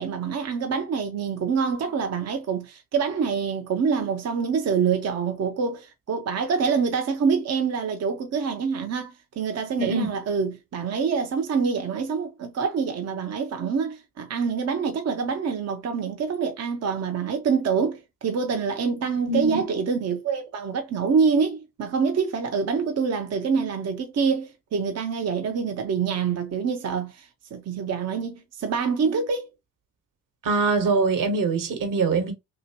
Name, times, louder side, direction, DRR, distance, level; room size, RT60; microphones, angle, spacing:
voice 1, 0.0-29.5, right 6 dB, 45° right, 0.7 m, -26 dB
voice 2, 9.8-10.1 19.3-19.6 30.4-32.3, right 3 dB, 60° right, 1.3 m, -23 dB
2.9 x 2.8 x 2.8 m
hypercardioid pair, 45°, 37 cm